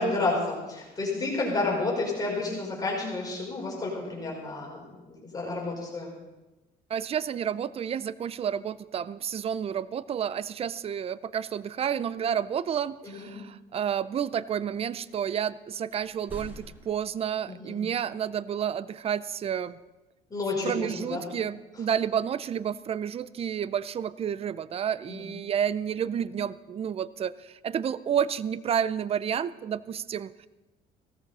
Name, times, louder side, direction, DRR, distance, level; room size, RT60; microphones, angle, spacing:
voice 1, 0.0-6.1 13.0-13.3 17.5-17.8 20.3-21.3 25.1-25.3, left 2 dB, 20° left, -3 dB, 4.9 m, -30 dB
voice 2, 6.9-19.8 20.6-30.5, right 8 dB, 35° right, 18 dB, 0.5 m, -30 dB
sound 1, 15.9-17.1, equal, 10° right, 2.0 m, -44 dB
17.0 x 14.0 x 4.2 m, 1.1 s
cardioid pair, 110°, 17 cm